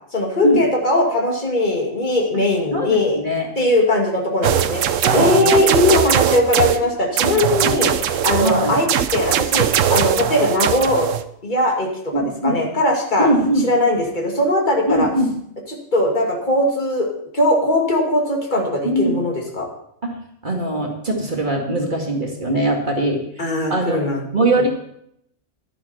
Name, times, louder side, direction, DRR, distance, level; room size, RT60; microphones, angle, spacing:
voice 1, 0.1-3.2 3.6-11.1 11.4-13.3 13.6-15.1 15.7-19.7 23.4-24.2, left 1 dB, 35° left, 0 dB, 2.5 m, -20 dB
voice 2, 2.7-3.5 5.0-5.6 7.3-7.7 8.4-8.8 12.1-12.6 13.2-13.7 14.9-15.3 18.8-19.2 20.0-20.1 20.4-23.2 23.7-24.0 24.3-24.7, right 1 dB, 40° right, 0 dB, 2.2 m, -21 dB
sound 1, 4.4-6.8 7.2-11.2, right 9 dB, 75° right, 1.0 m, -20 dB
11.5 x 11.0 x 4.4 m, 0.72 s
omnidirectional pair, 1.3 m